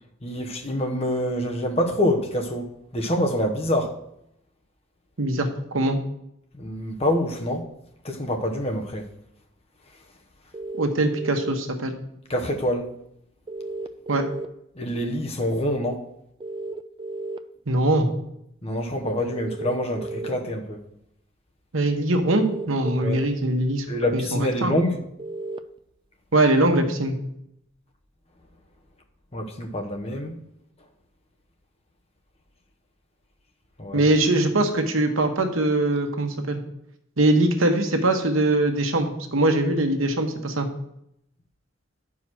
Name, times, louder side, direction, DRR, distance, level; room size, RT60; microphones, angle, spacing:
voice 1, 0.2-4.0 6.6-7.7 8.0-9.1 12.3-12.9 14.7-16.0 18.6-20.8 23.0-23.2 23.9-25.0 29.3-30.4 33.8-34.1, left 1 dB, 30° left, 1.0 m, -26 dB
voice 2, 5.2-6.0 10.8-11.9 14.1-14.2 17.7-18.1 21.7-23.8 24.1-24.8 26.3-27.2 33.9-36.6 37.2-40.7, right 2 dB, 85° right, 1.2 m, -22 dB
sound 1, 10.5-11.5 13.5-14.5 16.4-17.4 19.3-20.3 22.3-23.2 25.2-25.6, right 3 dB, 25° right, 0.3 m, -33 dB
10.0 x 4.8 x 6.2 m
head